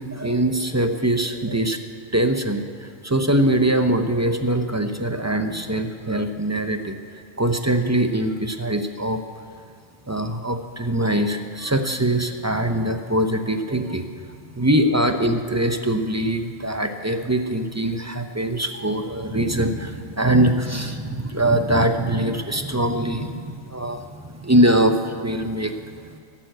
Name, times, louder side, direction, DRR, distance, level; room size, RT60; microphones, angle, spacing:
voice 1, 0.0-1.8 2.1-7.0 7.4-9.2 10.1-14.1 14.5-26.2, right 1 dB, 15° right, 7 dB, 0.6 m, -22 dB
13.5 x 11.5 x 7.8 m, 2.3 s
omnidirectional pair, 1.3 m